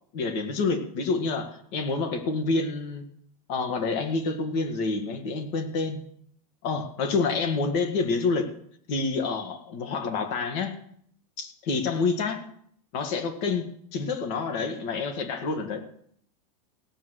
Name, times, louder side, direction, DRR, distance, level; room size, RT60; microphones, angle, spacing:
voice 1, 0.1-3.0 3.5-6.0 6.6-8.5 8.9-10.8 11.4-12.4 12.9-15.8, left 4 dB, 40° left, 7 dB, 1.9 m, -28 dB
16.5 x 6.3 x 8.1 m, 0.65 s
supercardioid pair, 175°, 21 cm